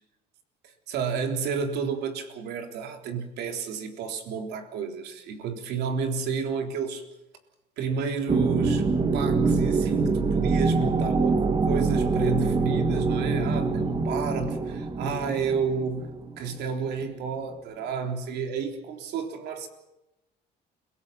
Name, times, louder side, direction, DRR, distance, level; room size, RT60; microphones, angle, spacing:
voice 1, 0.9-7.0 7.8-8.9 9.1-16.1 16.4-19.7, right 6 dB, 80° right, 5 dB, 3.7 m, -31 dB
sound 1, 8.3-16.8, right 3 dB, 30° right, 1.7 m, -25 dB
29.5 x 17.5 x 5.9 m, 0.92 s
cardioid pair, 110°, 17 cm